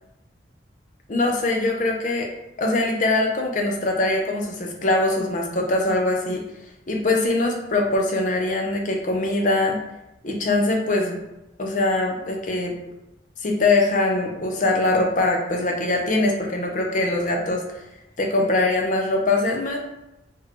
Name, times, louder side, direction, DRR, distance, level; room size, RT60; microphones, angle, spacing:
voice 1, 1.1-2.3 2.6-6.4 6.9-9.8 10.2-11.2 11.6-12.7 13.4-17.9 18.2-19.8, left 2 dB, 45° left, 1 dB, 0.6 m, -22 dB
4.0 x 2.9 x 3.1 m, 0.91 s
head